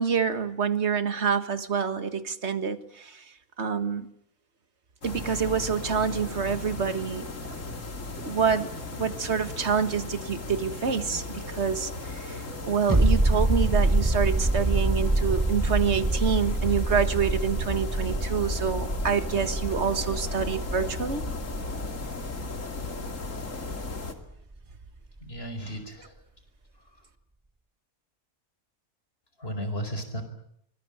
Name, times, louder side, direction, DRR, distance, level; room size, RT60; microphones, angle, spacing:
voice 1, 0.0-3.2 3.6-4.1 5.0-7.3 8.2-21.2, right 6 dB, 50° right, 11 dB, 1.9 m, -27 dB
sound 1, 5.0-24.1, left 3 dB, 60° left, 2.9 m, -36 dB
sound 2, 12.9-24.2 24.5-24.6, right 2 dB, 15° right, 0.9 m, -26 dB
voice 2, 25.2-26.2 26.9-27.0 29.4-30.2, equal, 45° left, 9 dB, 5.0 m, -35 dB
24.5 x 22.0 x 8.9 m, 0.74 s
omnidirectional pair, 1.5 m